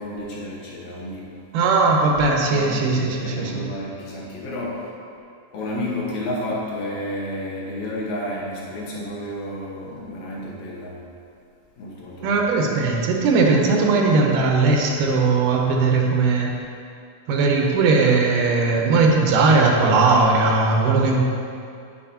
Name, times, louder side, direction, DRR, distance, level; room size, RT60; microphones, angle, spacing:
voice 1, 0.0-1.4 2.5-4.9 5.5-11.0 11.8-12.4, left 1 dB, 65° left, -5 dB, 2.6 m, -31 dB
voice 2, 1.5-3.6 12.2-16.5 17.3-21.2, right 3 dB, 85° right, 0 dB, 2.5 m, -18 dB
9.4 x 7.6 x 2.8 m, 2.5 s
omnidirectional pair, 3.6 m